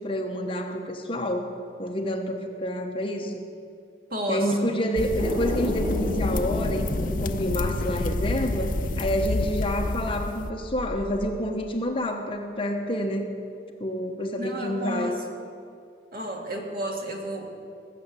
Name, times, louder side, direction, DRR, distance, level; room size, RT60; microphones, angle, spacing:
voice 1, 0.0-1.5 1.8-3.4 4.3-13.3 13.8-15.2, equal, 30° left, 3 dB, 1.1 m, -28 dB
voice 2, 4.1-4.7 14.4-15.2 16.1-17.5, right 1 dB, 55° right, 0 dB, 2.1 m, -31 dB
sound 1, 5.0-10.5, left 2 dB, 50° left, 0.5 m, -29 dB
sound 2, 5.2-11.2, equal, 25° right, 4.8 m, -33 dB
19.5 x 7.3 x 8.2 m, 2.4 s
head